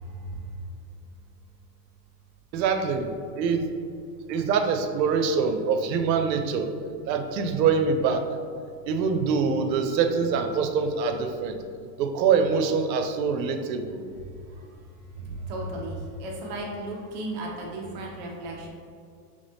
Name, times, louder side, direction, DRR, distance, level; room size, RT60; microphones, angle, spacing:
voice 1, 2.5-3.1 3.4-3.6 4.3-6.7 7.1-8.2 8.9-11.6 12.0-14.0, right 5 dB, 85° right, 6 dB, 0.7 m, -24 dB
voice 2, 15.4-18.7, right 1 dB, 30° right, -1 dB, 0.4 m, -35 dB
4.0 x 3.3 x 3.4 m, 2.3 s
supercardioid pair, 165°, 50 cm